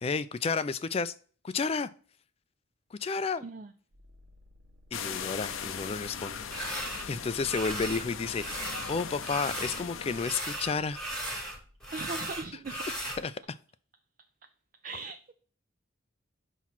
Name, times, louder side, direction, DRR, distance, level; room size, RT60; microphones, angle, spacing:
voice 1, 0.0-1.1 1.4-1.9 2.9-3.4 4.9-11.1 13.2-13.3, left 4 dB, 30° left, 0.3 m, -32 dB
voice 2, 3.4-3.7 11.9-12.9 14.8-15.3, right 4 dB, 40° right, 0.4 m, -39 dB
sound 1, 3.9-12.6, left 1 dB, 75° right, 0.9 m, -56 dB
sound 2, 4.9-10.3, left 7 dB, 80° left, 0.6 m, -39 dB
sound 3, 6.5-7.1 7.4-8.1 8.3-9.8 10.1-13.2, right 1 dB, 5° left, 1.3 m, -37 dB
5.9 x 3.1 x 5.7 m
head